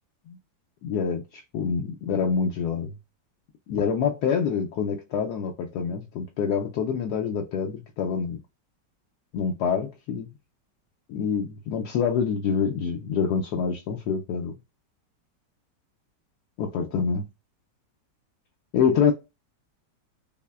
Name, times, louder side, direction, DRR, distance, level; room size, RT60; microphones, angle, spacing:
voice 1, 0.8-2.9 3.7-8.4 9.3-10.3 11.1-14.5 16.6-17.2 18.7-19.1, left 6 dB, 75° left, 1.1 m, -26 dB
5.5 x 2.1 x 2.3 m
omnidirectional pair, 1.9 m